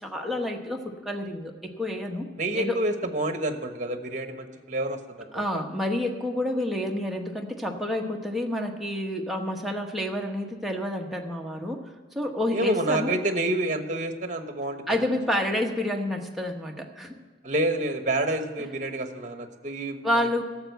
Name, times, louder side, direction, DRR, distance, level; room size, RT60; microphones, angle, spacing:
voice 1, 0.0-2.3 2.6-2.8 5.3-11.9 12.1-13.1 14.9-17.2 18.6-18.7 20.0-20.4, left 1 dB, ahead, 0 dB, 1.0 m, -29 dB
voice 2, 2.4-5.6 12.5-14.8 17.4-20.0, right 1 dB, 45° right, 7 dB, 1.1 m, -28 dB
12.5 x 7.2 x 8.1 m, 1.5 s
head